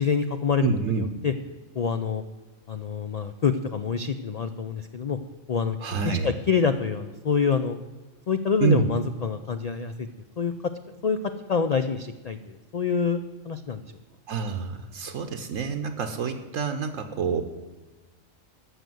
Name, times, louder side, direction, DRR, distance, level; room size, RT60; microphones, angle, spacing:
voice 1, 0.0-1.3 1.7-2.2 2.7-5.2 5.5-5.8 6.0-7.8 8.3-10.1 10.4-13.8, left 5 dB, 80° left, 9 dB, 0.3 m, -26 dB
voice 2, 0.6-1.1 5.8-6.3 8.6-8.9 14.3-17.4, right 6 dB, 75° right, 7 dB, 1.1 m, -27 dB
12.5 x 6.6 x 7.7 m, 1.2 s
omnidirectional pair, 1.4 m